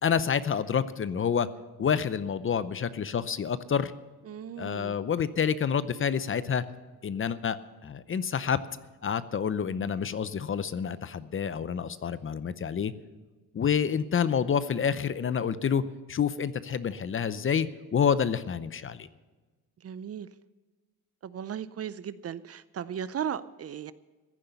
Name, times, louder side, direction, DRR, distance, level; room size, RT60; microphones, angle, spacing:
voice 1, 0.0-1.5 1.8-3.9 4.6-6.6 7.0-7.6 7.8-8.6 9.0-12.9 13.5-15.8 16.1-19.1, left 7 dB, 35° left, 15 dB, 0.7 m, -28 dB
voice 2, 4.3-4.9 19.8-20.3 21.2-23.9, right 8 dB, 40° right, 16 dB, 0.6 m, -36 dB
15.0 x 10.0 x 6.9 m, 1.3 s
cardioid pair, 95°, 37 cm